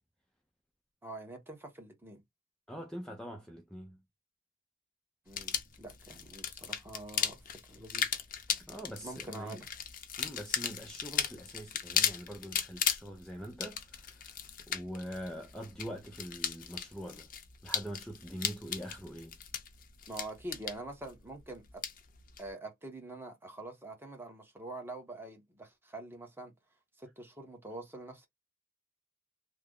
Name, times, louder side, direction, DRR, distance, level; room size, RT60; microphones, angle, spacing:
voice 1, 1.0-2.2 5.3-8.2 9.0-9.7 20.1-21.8 22.4-26.5 27.0-28.3, right 2 dB, 10° right, 0.9 m, -45 dB
voice 2, 2.7-4.0 8.6-9.6 10.2-14.3 14.7-17.3 17.6-19.4, equal, 5° left, 0.5 m, -43 dB
sound 1, 5.3-22.5, left 8 dB, 45° left, 0.6 m, -37 dB
3.3 x 2.1 x 3.6 m
head